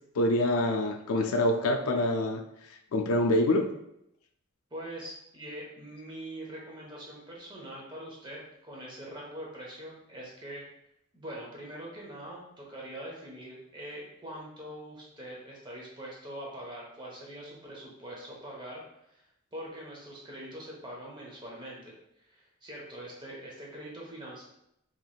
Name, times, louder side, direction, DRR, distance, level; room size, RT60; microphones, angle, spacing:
voice 1, 0.2-2.4 2.9-3.7, left 1 dB, 80° left, 5 dB, 0.4 m, -25 dB
voice 2, 4.7-10.7 11.1-18.8 19.1-24.4, right 1 dB, 20° right, -3 dB, 0.8 m, -43 dB
3.4 x 3.0 x 2.3 m, 0.81 s
head